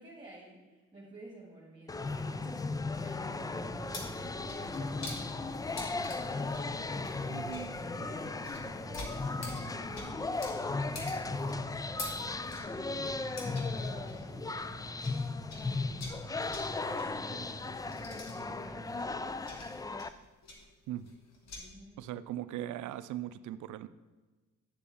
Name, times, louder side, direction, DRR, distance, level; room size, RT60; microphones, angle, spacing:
voice 1, 0.0-2.6 3.0-4.0 4.8-6.7 7.9-17.5 18.4-19.6 21.6-22.0, right 1 dB, 15° right, -5 dB, 2.3 m, -53 dB
sound 1, 1.9-20.1, left 3 dB, 15° left, 0.3 m, -36 dB
sound 2, 2.1-19.0, right 3 dB, 45° right, 1.1 m, -49 dB
sound 3, 3.7-15.2 15.5-21.6, left 2 dB, 60° left, 1.7 m, -47 dB
voice 2, 7.3-7.8 20.9-21.1 22.0-23.9, right 12 dB, 75° right, 14 dB, 0.5 m, -39 dB
8.9 x 6.9 x 3.6 m, 1.2 s
supercardioid pair, 65°, 30 cm